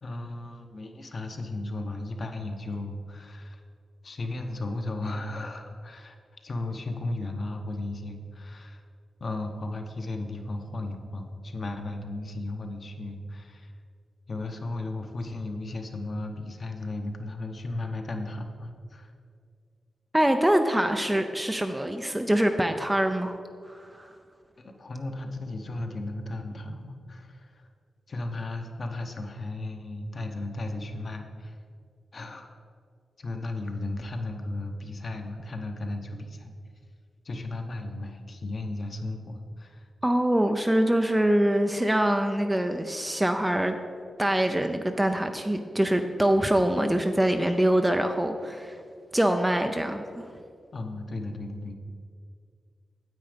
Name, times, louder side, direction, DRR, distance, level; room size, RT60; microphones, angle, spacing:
voice 1, 0.0-3.6 4.0-6.1 6.4-8.8 9.2-13.7 14.3-19.1 24.6-27.7 28.1-31.6 32.1-32.5 33.2-36.5 37.2-39.9 50.7-51.7, left 2 dB, 40° left, 5 dB, 0.9 m, -35 dB
voice 2, 20.1-23.4 23.7-24.1 40.0-43.7 44.2-48.8 49.1-50.3, right 1 dB, 10° right, 6 dB, 0.4 m, -24 dB
9.5 x 8.2 x 5.1 m, 2.2 s
wide cardioid pair, 150°, 0 cm